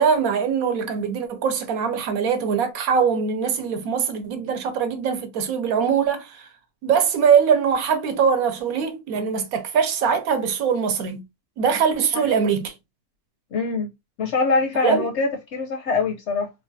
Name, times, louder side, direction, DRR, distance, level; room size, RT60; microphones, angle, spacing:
voice 1, 0.0-6.5 6.8-11.2 11.6-12.7 14.8-15.1, right 6 dB, 75° right, 1.1 m, -22 dB
voice 2, 13.5-13.9 14.2-16.5, left 4 dB, 65° left, 0.7 m, -23 dB
3.3 x 2.3 x 2.5 m
omnidirectional pair, 1.5 m